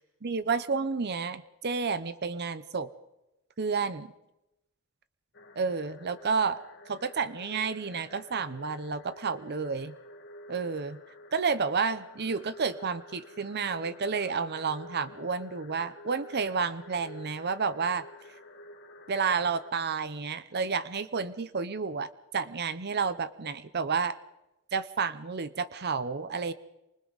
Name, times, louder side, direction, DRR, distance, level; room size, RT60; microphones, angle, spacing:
voice 1, 0.2-2.9 3.6-4.1 5.6-6.6 6.9-9.9 10.5-11.0 11.3-18.1 19.1-24.2 24.7-26.5, right 5 dB, 50° right, 14 dB, 0.8 m, -30 dB
sound 1, 5.3-19.7, left 1 dB, 55° left, 1.8 m, -50 dB
28.0 x 25.0 x 4.0 m, 0.93 s
head